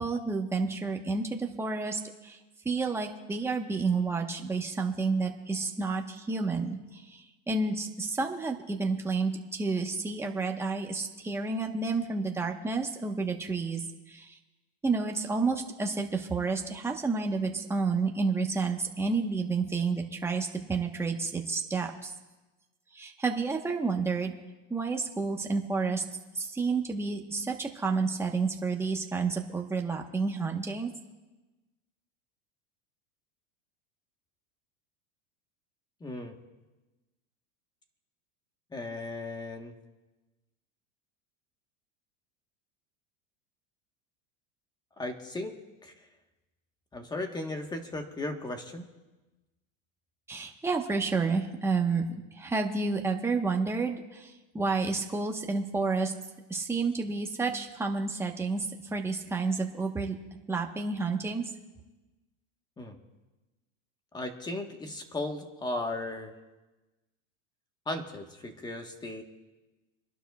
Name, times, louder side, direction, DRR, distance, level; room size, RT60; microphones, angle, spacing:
voice 1, 0.0-2.4 2.6-14.4 14.8-22.1 22.9-24.3 24.7-26.0 26.3-30.9 50.3-52.0 52.3-56.1 56.5-60.1 60.5-61.5, right 4 dB, 5° right, 2 dB, 1.1 m, -30 dB
voice 2, 36.0-36.4 38.7-39.7 45.0-45.5 45.8-45.9 46.9-48.8 62.8-63.0 64.1-66.3 67.9-69.2, left 2 dB, 10° left, 5 dB, 1.2 m, -36 dB
27.5 x 11.5 x 2.3 m, 1.1 s
supercardioid pair, 145°, 35 cm